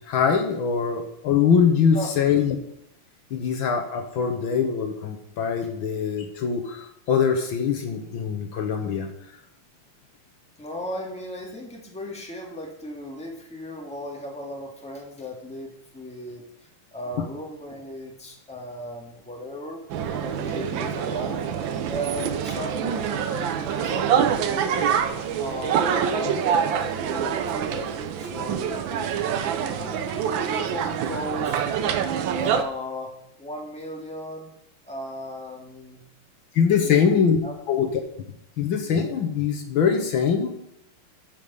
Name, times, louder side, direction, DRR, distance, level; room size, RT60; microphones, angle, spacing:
voice 1, 0.1-2.5 3.3-9.1 36.5-37.4 37.7-37.9 38.6-40.5, left 6 dB, 65° left, 5 dB, 1.7 m, -23 dB
voice 2, 10.6-19.8 20.1-21.5 21.8-24.9 25.4-30.0 30.4-31.6 32.4-34.5 34.8-36.0 36.7-37.5, equal, 5° left, 0 dB, 1.8 m, -36 dB
sound 1, 19.9-32.6, right 8 dB, 70° right, 1.4 m, -26 dB
13.0 x 5.2 x 5.5 m, 0.76 s
omnidirectional pair, 2.4 m